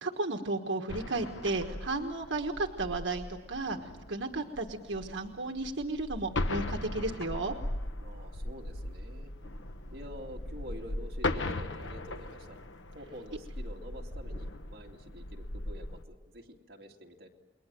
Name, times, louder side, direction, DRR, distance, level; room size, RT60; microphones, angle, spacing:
voice 1, 0.0-7.5, right 2 dB, 85° right, 4 dB, 1.4 m, -34 dB
sound 1, 0.9-16.0, left 2 dB, 85° left, 1.1 m, -38 dB
voice 2, 8.0-9.3 9.9-12.6 12.9-17.3, equal, 55° right, -1 dB, 2.6 m, -48 dB
28.5 x 22.0 x 7.7 m, 1.2 s
head